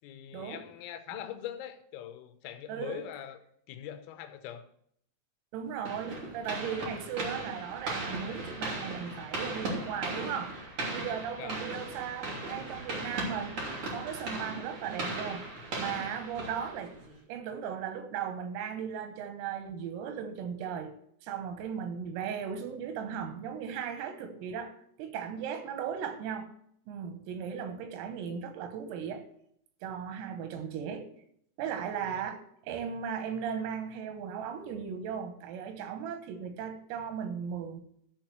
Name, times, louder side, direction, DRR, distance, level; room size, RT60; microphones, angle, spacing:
voice 1, 0.0-3.4 3.7-4.7 11.4-11.6 32.1-32.2, left 11 dB, 90° left, 3.6 m, -42 dB
voice 2, 2.7-3.0 5.5-10.6 10.9-13.6 13.9-17.0 17.3-20.9 21.2-26.5 26.9-29.3 29.8-31.1 31.6-37.8, right 7 dB, 90° right, 4.0 m, -37 dB
sound 1, 5.8-17.1, right 2 dB, 40° right, 2.3 m, -37 dB
12.5 x 4.6 x 7.6 m
omnidirectional pair, 5.9 m